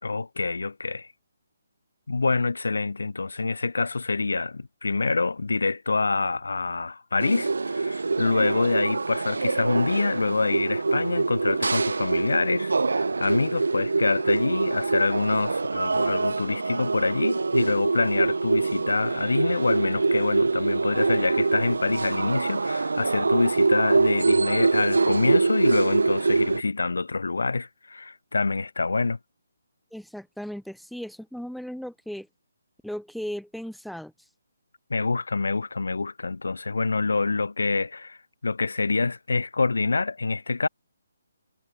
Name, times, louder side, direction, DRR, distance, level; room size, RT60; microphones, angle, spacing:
voice 1, 0.0-1.1 2.1-29.2 34.9-38.2 38.4-40.7, left 3 dB, 70° left, 5.0 m, -26 dB
sound 1, 7.2-26.6, right 3 dB, 70° right, 2.2 m, -24 dB
voice 2, 29.9-32.3 32.8-34.1, equal, ahead, 4.6 m, -36 dB
figure-of-eight pair, 140°, 0 cm